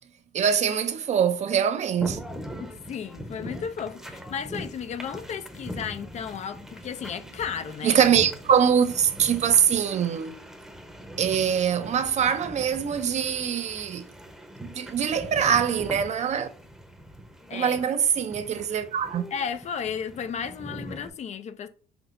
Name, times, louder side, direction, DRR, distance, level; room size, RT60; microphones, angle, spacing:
voice 1, 0.3-2.2 7.8-10.4 11.2-14.1 14.6-16.5 17.5-19.3, right 8 dB, 40° right, 0.5 m, -23 dB
sound 1, 2.0-21.1, equal, ahead, 0.8 m, -41 dB
voice 2, 2.6-8.0 17.5-17.8 19.3-21.7, left 7 dB, 45° left, 0.4 m, -34 dB
5.9 x 2.6 x 2.5 m
supercardioid pair, 90°, 17 cm